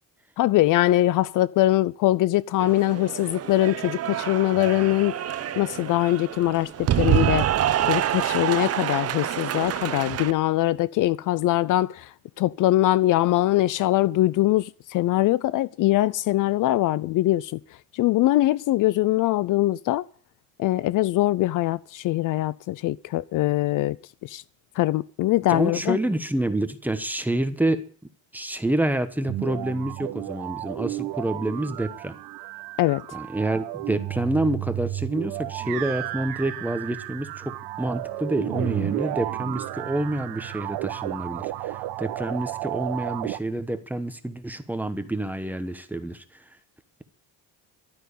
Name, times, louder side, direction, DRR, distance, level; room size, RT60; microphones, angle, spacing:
voice 1, 0.4-5.2 5.6-17.6 17.9-20.0 20.6-24.0 24.2-24.4 24.8-26.0 32.8-33.2, left 16 dB, 55° left, 0.6 m, -22 dB
Cheering / Applause, 2.6-10.3, right 11 dB, 40° right, 0.9 m, -27 dB
voice 2, 25.5-27.8 28.3-32.2 33.1-46.4, right 1 dB, 5° right, 1.1 m, -28 dB
sound 1, 29.3-43.4, right 16 dB, 90° right, 1.1 m, -32 dB
12.5 x 9.3 x 8.3 m
cardioid pair, 150°, 37 cm